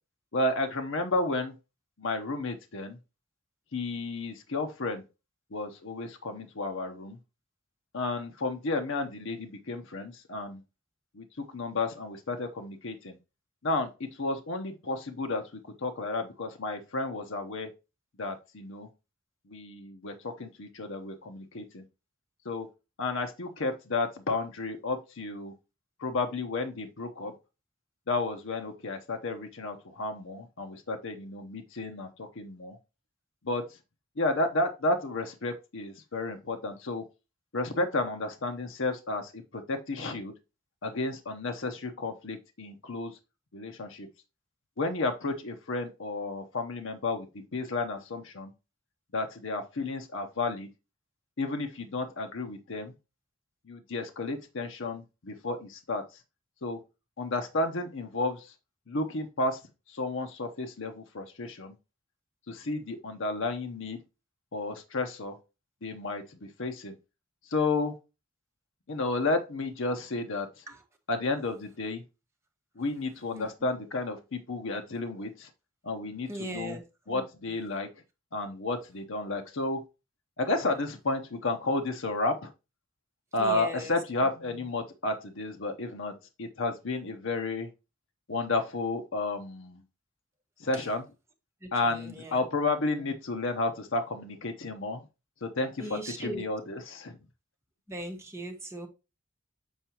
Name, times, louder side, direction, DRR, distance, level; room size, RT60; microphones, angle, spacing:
voice 1, 0.3-1.5 2.0-3.0 3.7-5.0 5.5-7.2 7.9-10.6 11.1-13.2 13.6-17.7 18.2-18.9 19.5-21.8 22.4-22.7 23.0-25.5 26.0-27.3 28.1-32.8 33.4-33.6 34.2-37.0 37.5-40.3 40.8-43.2 43.5-44.1 44.8-48.5 49.1-50.7 51.4-52.9 53.7-56.2 56.6-56.8 57.2-58.5 58.9-59.6 59.9-61.7 62.5-64.0 64.5-65.4 65.8-67.0 67.5-67.9 68.9-70.6 71.1-72.0 72.8-75.5 75.8-76.8 77.1-77.9 78.3-79.8 80.4-82.5 83.3-87.7 88.3-89.8 90.6-91.1 91.7-95.0 95.4-97.2, left 2 dB, 65° left, 0.8 m, -32 dB
voice 2, 76.3-76.8 83.4-83.9 91.6-92.5 95.8-96.4 97.9-98.9, right 1 dB, 15° right, 1.3 m, -39 dB
7.4 x 4.6 x 2.9 m
head